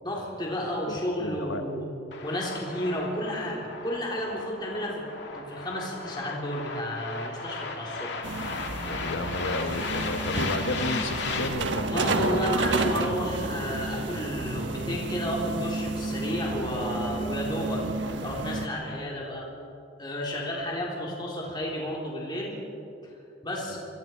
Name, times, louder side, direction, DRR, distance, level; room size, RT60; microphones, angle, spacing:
voice 1, 0.0-1.9 2.2-5.0 5.3-8.1 11.9-17.8 18.2-19.5 20.0-22.6 23.4-23.8, equal, 20° left, -3 dB, 3.5 m, -32 dB
voice 2, 0.9-1.6 8.7-12.5 23.7-23.8, left 2 dB, 75° left, 7 dB, 1.1 m, -33 dB
sound 1, 2.1-11.5, left 4 dB, 60° left, 2.4 m, -36 dB
sound 2, 8.2-18.7, right 2 dB, 65° right, 1.3 m, -31 dB
sound 3, 10.9-17.2, equal, 25° right, 4.4 m, -45 dB
27.0 x 24.0 x 4.5 m, 2.7 s
head